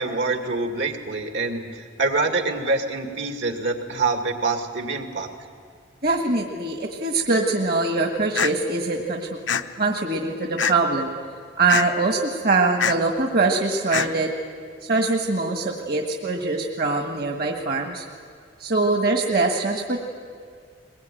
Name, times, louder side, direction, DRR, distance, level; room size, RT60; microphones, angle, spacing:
voice 1, 0.0-5.3, right 3 dB, 75° right, 4 dB, 2.3 m, -25 dB
voice 2, 6.0-9.5 9.8-11.1 11.6-14.3 14.9-18.0 18.6-20.1, right 3 dB, 55° right, 3 dB, 1.6 m, -23 dB
sound 1, 8.3-8.5 9.5-9.6 10.6-10.9 11.7-11.8 12.8-12.9 13.9-14.1, left 7 dB, 85° left, 0.8 m, -23 dB
22.0 x 20.5 x 9.2 m, 2.2 s
head